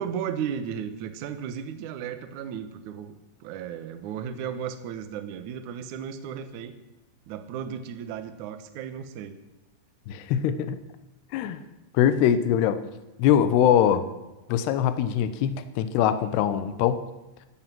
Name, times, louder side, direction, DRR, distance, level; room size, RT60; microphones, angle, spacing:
voice 1, 0.0-3.1 3.4-6.7 7.3-9.4, right 8 dB, 85° right, 9 dB, 1.7 m, -34 dB
voice 2, 10.1-10.8 11.3-11.6 11.9-12.8 13.2-14.1 14.5-17.0, left 9 dB, 75° left, 11 dB, 2.8 m, -22 dB
14.5 x 10.5 x 7.6 m, 1.0 s
omnidirectional pair, 5.3 m